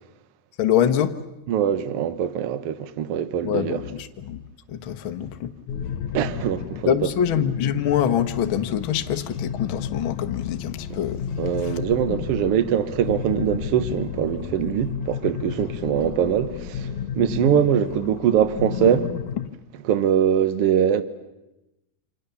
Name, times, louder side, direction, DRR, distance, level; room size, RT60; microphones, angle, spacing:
voice 1, 0.6-1.2 3.4-4.4 4.7-5.5 6.9-11.2, left 9 dB, 85° left, 1.1 m, -24 dB
voice 2, 1.5-3.8 6.1-7.1 10.9-11.0 11.4-19.1 19.8-21.0, right 9 dB, 80° right, 1.3 m, -22 dB
sound 1, 5.7-19.5, left 8 dB, 65° left, 2.1 m, -32 dB
28.0 x 26.0 x 7.0 m
omnidirectional pair, 4.2 m